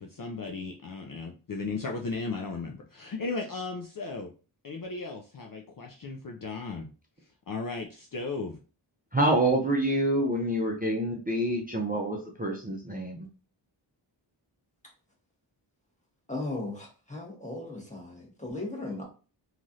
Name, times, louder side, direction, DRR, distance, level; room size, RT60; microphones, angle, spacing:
voice 1, 0.0-4.3 4.6-6.9 7.5-8.6, left 3 dB, 45° left, 1 dB, 0.5 m, -36 dB
voice 2, 9.1-13.3, right 1 dB, 20° right, -1 dB, 0.5 m, -27 dB
voice 3, 16.3-19.0, left 2 dB, 15° left, -2 dB, 1.1 m, -37 dB
3.0 x 2.4 x 2.6 m, 0.35 s
wide cardioid pair, 70°, 47 cm